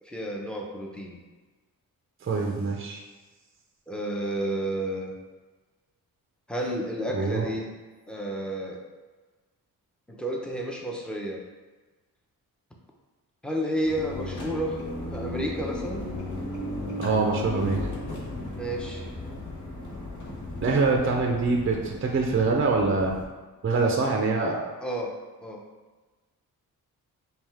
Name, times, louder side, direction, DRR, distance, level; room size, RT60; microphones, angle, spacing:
voice 1, 0.0-1.2 3.9-5.1 6.5-7.7 8.1-8.8 10.1-11.4 13.4-14.8 15.1-16.1 18.5-19.1 24.8-25.1 25.4-25.6, right 1 dB, 5° left, -1 dB, 0.8 m, -31 dB
voice 2, 2.2-3.0 7.1-7.5 16.9-17.8 20.6-23.1 23.6-24.6, right 3 dB, 35° right, 1 dB, 0.6 m, -24 dB
sound 1, 13.8-23.3, left 2 dB, 55° left, 1.2 m, -35 dB
5.2 x 2.4 x 3.5 m, 1.3 s
cardioid pair, 70°, 37 cm